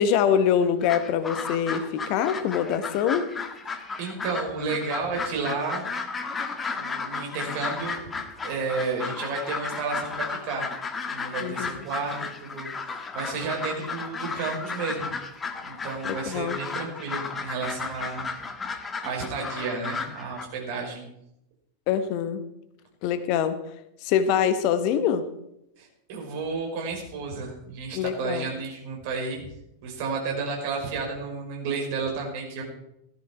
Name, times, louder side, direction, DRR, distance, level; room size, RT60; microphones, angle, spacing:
voice 1, 0.0-3.3 11.4-11.8 16.0-16.6 21.9-22.4 23.0-23.6 24.0-25.3 27.9-28.5, left 8 dB, 45° left, 10 dB, 1.3 m, -24 dB
sound 1, 0.6-20.5, left 4 dB, 15° left, 1.7 m, -34 dB
voice 2, 4.0-5.8 6.7-8.0 8.4-10.7 11.1-12.7 13.1-15.1 15.6-18.3 19.0-21.0 25.8-29.4 29.8-32.6, right 4 dB, 50° right, 0 dB, 5.6 m, -32 dB
17.5 x 14.0 x 4.6 m, 0.81 s
figure-of-eight pair, 90°, 0 cm